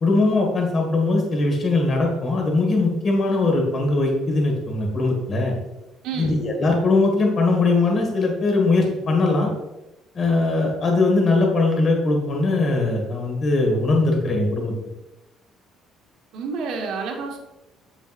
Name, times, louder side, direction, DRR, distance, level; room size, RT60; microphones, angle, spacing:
voice 1, 0.0-5.5 6.2-9.5 10.1-14.7, left 2 dB, 40° left, 1 dB, 1.8 m, -20 dB
voice 2, 6.0-6.4 16.3-17.4, right 5 dB, 80° right, 1 dB, 1.4 m, -29 dB
7.5 x 7.1 x 2.5 m, 0.98 s
cardioid pair, 140°, 0 cm